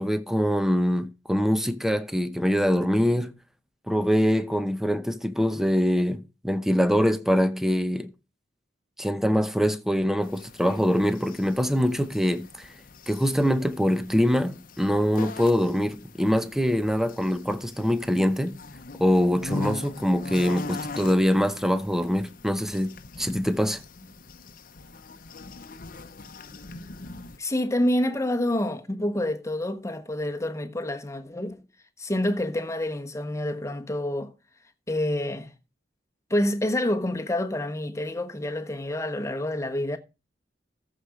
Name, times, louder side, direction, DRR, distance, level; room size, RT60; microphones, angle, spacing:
voice 1, 0.0-3.3 3.9-8.1 9.0-12.5 13.1-18.6 19.0-23.8, equal, ahead, 0.8 m, -24 dB
sound 1, 10.2-27.4, left 3 dB, 50° left, 0.9 m, -41 dB
voice 2, 27.4-31.6 32.0-34.3 34.9-35.5 36.3-40.0, left 1 dB, 15° left, 1.2 m, -27 dB
14.0 x 5.1 x 6.3 m
head